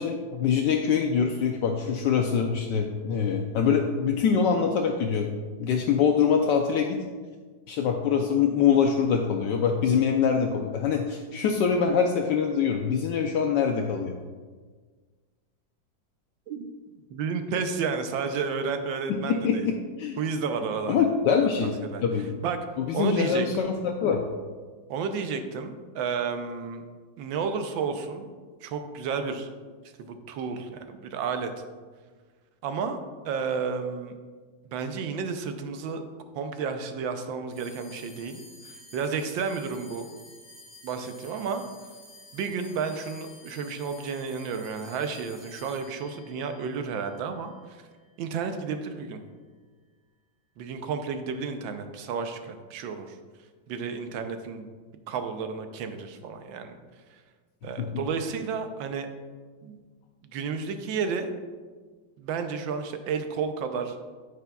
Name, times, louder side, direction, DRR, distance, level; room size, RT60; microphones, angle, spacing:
voice 1, 0.0-5.3 5.6-7.0 7.7-14.1 19.1-20.2 20.9-21.7 22.0-22.4 22.8-24.3 57.8-58.0, left 6 dB, 75° left, 2 dB, 1.2 m, -24 dB
voice 2, 17.1-19.7 20.2-21.0 21.6-22.0 22.4-22.6 22.9-23.7 24.9-26.8 27.2-28.3 28.6-29.5 30.0-31.5 32.6-33.0 33.2-34.1 34.6-36.0 36.3-38.4 38.9-40.1 40.8-41.6 42.3-47.5 48.2-49.2 50.6-53.2 53.7-54.7 55.1-56.8 57.6-59.1 59.6-59.8 60.3-61.3 62.2-64.0, right 5 dB, 85° right, 7 dB, 1.4 m, -31 dB
sound 1, 37.5-48.2, left 2 dB, 10° left, 1.3 m, -51 dB
9.5 x 8.2 x 2.3 m, 1.5 s
omnidirectional pair, 2.1 m